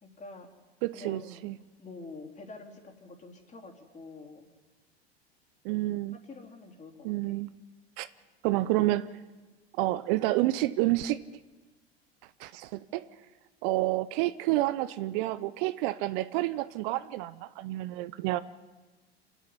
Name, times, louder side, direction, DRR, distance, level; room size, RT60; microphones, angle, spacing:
voice 1, 0.0-0.5 0.9-1.5 1.8-4.5 6.2-7.4, left 3 dB, 25° left, 1 dB, 4.0 m, -47 dB
voice 2, 0.8-1.6 5.6-6.1 7.0-7.5 8.0-8.1 8.4-9.1 9.8-11.2 12.4-13.1 13.6-18.4, right 17 dB, 55° right, 15 dB, 0.7 m, -29 dB
27.5 x 10.5 x 9.7 m, 1.2 s
hypercardioid pair, 85°, 32 cm